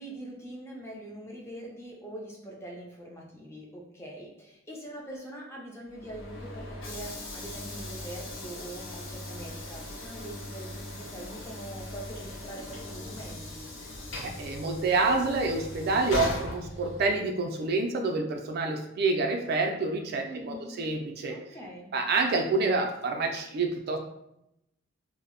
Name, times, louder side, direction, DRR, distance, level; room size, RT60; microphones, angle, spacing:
voice 1, 0.0-13.7 20.2-20.8 21.3-21.9, right 1 dB, 15° left, -2 dB, 0.5 m, -43 dB
Train / Sliding door, 5.9-17.3, left 1 dB, 70° left, 0.6 m, -39 dB
voice 2, 14.4-21.3 21.9-24.0, right 3 dB, 50° right, 3 dB, 0.3 m, -27 dB
2.0 x 2.0 x 3.6 m, 0.82 s
head